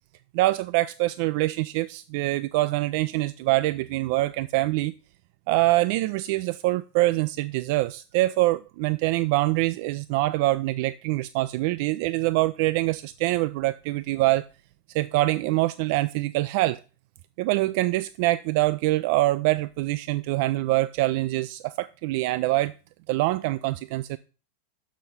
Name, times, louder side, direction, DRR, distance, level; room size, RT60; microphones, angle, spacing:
voice 1, 0.3-4.9 5.5-14.5 14.9-16.8 17.4-22.7 23.1-24.2, right 18 dB, 50° right, 0.3 m, -24 dB
6.3 x 6.2 x 5.5 m
figure-of-eight pair, 90°, 0 cm